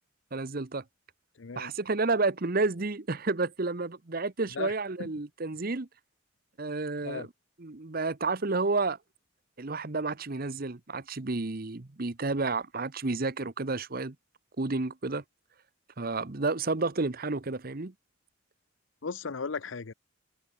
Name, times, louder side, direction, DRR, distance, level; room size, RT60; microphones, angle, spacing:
voice 1, 0.3-0.8 1.6-5.9 6.6-7.3 7.6-9.0 9.6-14.1 14.6-15.2 16.0-17.9, right 3 dB, 50° right, 1.0 m, -30 dB
voice 2, 1.4-1.7 4.5-4.7 5.0-5.1 7.0-7.3 19.0-19.9, left 5 dB, 75° left, 0.7 m, -36 dB
head